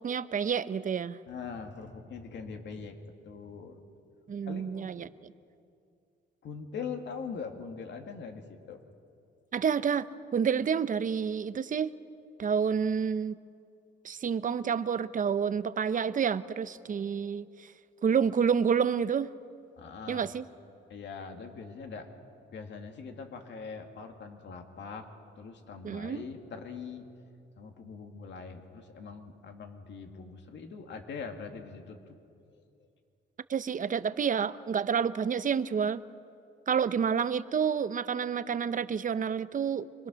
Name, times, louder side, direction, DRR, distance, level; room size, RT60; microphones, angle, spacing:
voice 1, 0.0-1.2 4.3-5.3 9.5-10.1 10.3-11.9 12.4-13.4 14.0-17.7 18.0-19.3 20.1-20.5 25.8-26.2 33.5-36.0 36.7-39.9, right 7 dB, 40° right, 14 dB, 0.8 m, -29 dB
voice 2, 1.3-3.0 3.2-3.8 4.4-4.9 6.4-8.8 19.8-20.3 20.9-22.1 22.5-25.1 25.4-27.1 27.6-32.1 32.5-32.6, left 5 dB, 65° left, 4 dB, 2.4 m, -42 dB
25.5 x 22.0 x 6.4 m, 2.5 s
cardioid pair, 90°, 20 cm